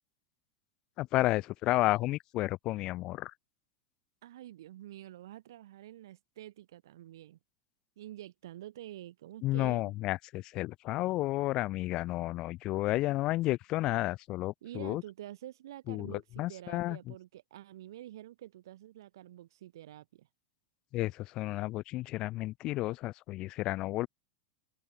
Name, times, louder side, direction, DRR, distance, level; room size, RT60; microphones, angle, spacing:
voice 1, 1.0-3.3 9.4-15.0 15.9-17.0 20.9-24.1, left 17 dB, 35° left, 1.2 m, -32 dB
voice 2, 4.2-7.4 8.0-9.9 14.6-20.3, right 13 dB, 80° right, 2.7 m, -48 dB
supercardioid pair, 160°, 2 cm